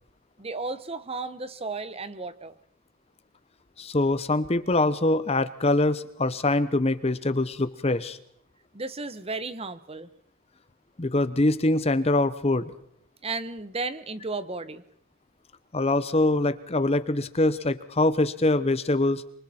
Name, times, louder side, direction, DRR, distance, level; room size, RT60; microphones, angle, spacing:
voice 1, 0.4-2.5 8.7-10.1 13.2-14.8, right 3 dB, 25° right, 13 dB, 1.0 m, -34 dB
voice 2, 3.8-8.2 11.0-12.7 15.7-19.2, left 2 dB, 25° left, 14 dB, 0.8 m, -24 dB
26.5 x 24.0 x 4.4 m, 0.69 s
head